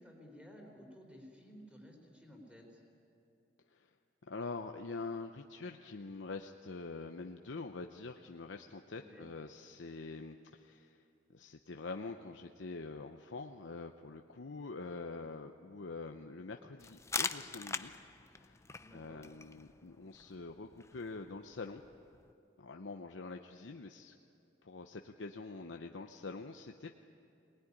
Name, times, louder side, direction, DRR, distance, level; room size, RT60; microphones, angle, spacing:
voice 1, 0.0-2.8 8.9-9.3 18.8-19.3, equal, 5° right, 1 dB, 4.0 m, -55 dB
voice 2, 4.3-11.0 11.3-17.9 18.4-18.6 18.9-21.8 22.6-24.1 24.6-26.9, left 3 dB, 85° left, 4 dB, 0.8 m, -45 dB
sound 1, 16.8-22.3, left 4 dB, 15° left, 0.5 m, -43 dB
23.0 x 19.0 x 9.9 m, 2.7 s
head